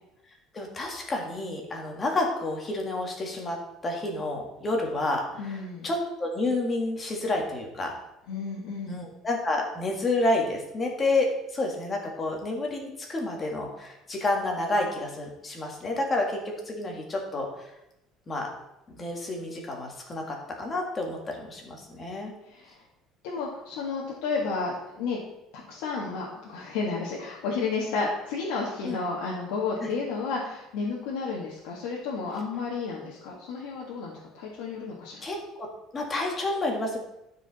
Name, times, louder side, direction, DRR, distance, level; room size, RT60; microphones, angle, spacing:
voice 1, 0.5-7.9 8.9-17.7 18.3-18.5 18.9-22.3 28.8-29.0 29.8-29.9 35.2-37.0, left 2 dB, 20° left, 1 dB, 1.7 m, -30 dB
voice 2, 5.4-5.9 8.3-9.0 22.4-22.8 23.2-25.2 25.5-35.2, left 4 dB, 90° left, -3 dB, 1.7 m, -32 dB
12.5 x 5.0 x 4.2 m, 0.87 s
cardioid pair, 160°, 0 cm